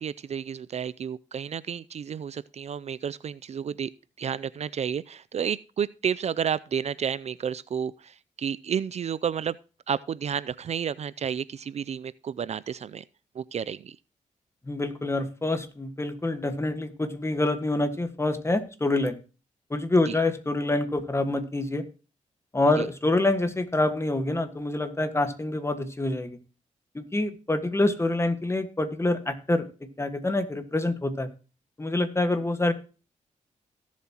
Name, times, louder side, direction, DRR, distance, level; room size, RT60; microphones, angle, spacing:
voice 1, 0.0-3.9 4.2-9.6 9.9-13.0 13.3-14.0 20.1-20.2 22.8-22.9, right 8 dB, 55° right, 18 dB, 0.4 m, -31 dB
voice 2, 14.6-19.2 19.7-21.8 22.5-26.4 26.9-31.3 31.8-32.7, left 2 dB, 20° left, 10 dB, 1.6 m, -26 dB
17.5 x 7.4 x 2.9 m, 0.34 s
cardioid pair, 80°, 13 cm